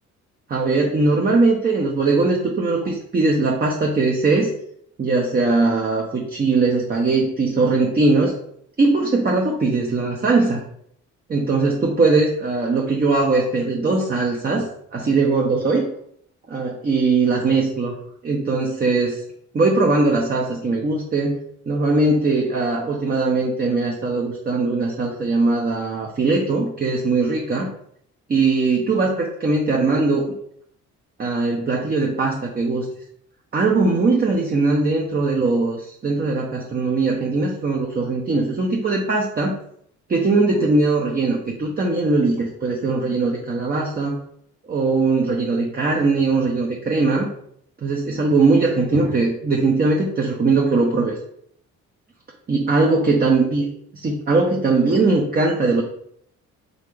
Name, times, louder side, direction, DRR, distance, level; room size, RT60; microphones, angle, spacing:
voice 1, 0.5-4.5 5.0-8.3 8.8-10.6 11.3-15.9 16.5-17.9 18.2-19.2 19.5-21.4 21.7-27.7 28.3-30.3 31.2-32.9 33.5-39.6 40.1-44.2 44.7-47.3 47.8-51.2 52.5-53.7 53.9-55.8, right 3 dB, 30° right, -1 dB, 0.7 m, -20 dB
3.9 x 3.3 x 3.2 m, 0.67 s
cardioid pair, 90°, 30 cm